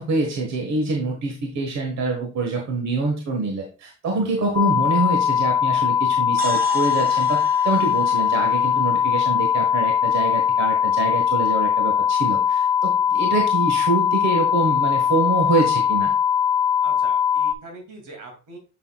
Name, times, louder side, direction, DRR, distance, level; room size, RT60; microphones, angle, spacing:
voice 1, 0.0-16.1, right 3 dB, 65° right, 2 dB, 1.5 m, -25 dB
sound 1, 4.5-17.5, left 8 dB, 15° left, 1.0 m, -20 dB
sound 2, 6.4-10.3, right 5 dB, 30° right, 0.9 m, -37 dB
voice 2, 16.8-18.6, right 2 dB, 85° right, 2 dB, 2.6 m, -42 dB
7.2 x 6.7 x 2.3 m, 0.34 s
cardioid pair, 90°, 30 cm